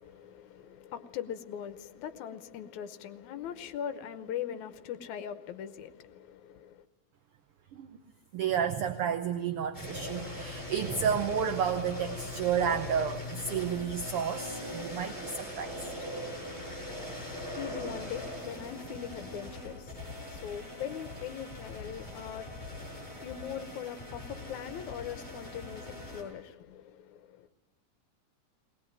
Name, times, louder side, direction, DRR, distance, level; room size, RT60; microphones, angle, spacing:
voice 1, 0.0-6.9 17.3-27.5, left 9 dB, 80° left, 2.3 m, -41 dB
voice 2, 8.3-15.8, right 7 dB, 70° right, 1.4 m, -31 dB
sound 1, 9.7-26.2, left 1 dB, 20° left, 6.6 m, -41 dB
20.5 x 19.0 x 9.0 m
omnidirectional pair, 3.4 m